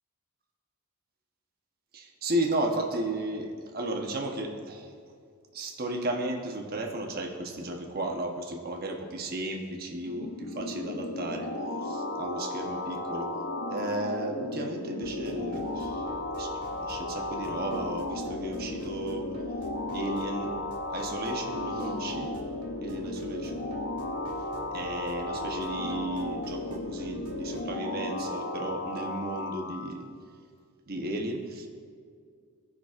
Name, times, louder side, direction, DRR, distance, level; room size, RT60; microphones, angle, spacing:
voice 1, 1.9-4.9 5.5-11.5 11.8-13.3 13.7-16.0 16.3-19.2 19.9-20.6 20.9-22.3 22.8-23.6 24.7-30.0 30.9-31.7, right 1 dB, 40° right, 2 dB, 0.9 m, -34 dB
sound 1, 10.0-29.9, left 2 dB, 55° left, 0.6 m, -35 dB
sound 2, 15.0-27.6, right 1 dB, 80° right, 1.5 m, -47 dB
16.5 x 5.9 x 2.4 m, 2.1 s
head